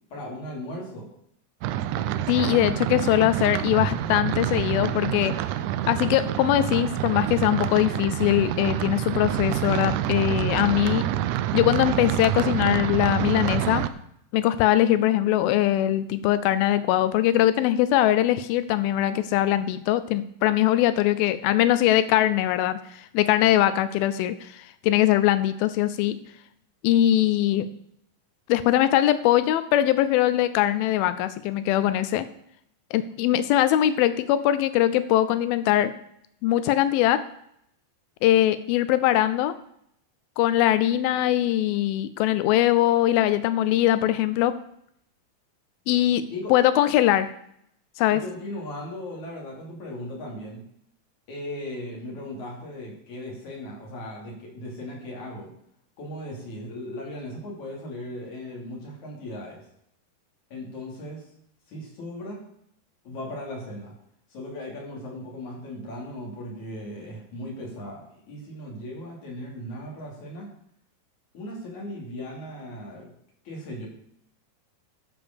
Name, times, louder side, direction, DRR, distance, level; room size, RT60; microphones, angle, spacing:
voice 1, 0.1-1.1 46.3-46.5 48.1-50.6 51.3-55.5 56.0-59.7 60.5-61.3 61.7-62.4 63.0-63.9 64.3-70.5 71.3-73.1 73.5-73.9, left 1 dB, 55° left, -2 dB, 4.1 m, -37 dB
sound 1, 1.6-13.9, right 12 dB, 90° right, 1.8 m, -27 dB
voice 2, 2.3-5.3 5.9-11.0 11.5-13.9 14.3-26.2 26.8-27.7 28.5-32.3 32.9-35.9 36.4-37.2 38.2-39.5 40.4-44.6 45.9-46.2 46.5-47.3 48.0-48.2, left 13 dB, 85° left, 13 dB, 2.4 m, -22 dB
12.0 x 5.3 x 6.8 m, 0.71 s
omnidirectional pair, 4.2 m